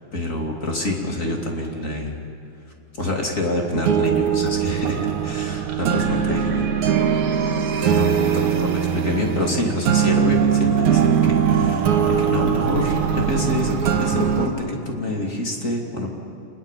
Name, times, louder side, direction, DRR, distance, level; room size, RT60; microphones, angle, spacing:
voice 1, 0.1-2.2 2.9-7.2 7.9-16.1, left 2 dB, 25° left, 0 dB, 2.8 m, -27 dB
sound 1, 3.7-14.5, right 8 dB, 70° right, 3.0 m, -21 dB
27.5 x 20.5 x 7.5 m, 2.6 s
omnidirectional pair, 3.7 m